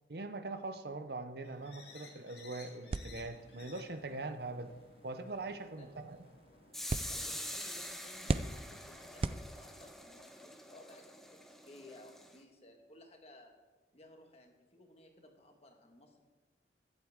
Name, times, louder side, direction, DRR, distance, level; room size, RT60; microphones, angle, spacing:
voice 1, 0.1-4.7 5.0-6.2, right 2 dB, 55° right, 9 dB, 0.7 m, -42 dB
sound 1, 1.4-8.2, left 3 dB, 65° left, 2.0 m, -58 dB
sound 2, 2.9-10.0, right 3 dB, 30° right, 0.4 m, -41 dB
sound 3, 6.7-12.4, left 1 dB, ahead, 0.7 m, -45 dB
voice 2, 7.1-13.5 13.9-16.2, left 1 dB, 35° left, 3 dB, 1.5 m, -57 dB
22.0 x 7.9 x 3.6 m, 1.2 s
head